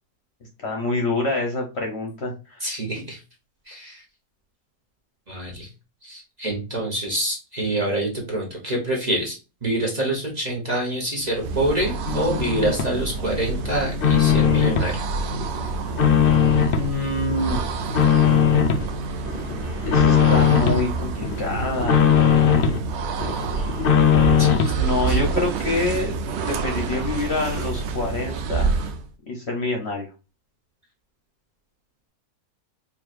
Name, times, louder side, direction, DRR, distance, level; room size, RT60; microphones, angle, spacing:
voice 1, 0.6-2.7 16.7-17.6 19.9-22.1 24.8-26.1 26.4-28.7 29.3-30.1, left 2 dB, 50° left, 2 dB, 1.0 m, -26 dB
voice 2, 2.6-3.2 3.7-4.0 5.3-5.7 6.0-9.3 9.6-15.0 24.4-25.2, right 1 dB, 30° right, -3 dB, 1.1 m, -26 dB
sound 1, 11.3-29.1, right 4 dB, 70° right, 0.6 m, -28 dB
sound 2, 12.1-12.9 13.3-14.9 15.3-16.9 17.3-18.8 19.2-20.8 21.2-22.8 23.2-24.8, left 8 dB, 75° left, 0.5 m, -19 dB
4.7 x 3.1 x 2.4 m, 0.30 s
omnidirectional pair, 1.6 m